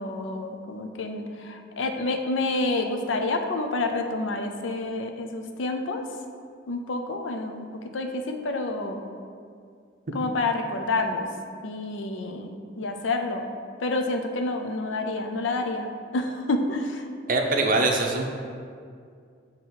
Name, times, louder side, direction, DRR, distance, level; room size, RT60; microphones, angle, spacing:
voice 1, 0.0-6.0 6.7-7.7 7.9-9.0 10.1-11.3 11.6-12.5 12.8-13.5 13.8-17.1, left 2 dB, 80° left, 4 dB, 0.5 m, -28 dB
voice 2, 17.3-18.3, right 2 dB, 45° right, 2 dB, 0.6 m, -22 dB
7.3 x 3.0 x 4.6 m, 2.2 s
head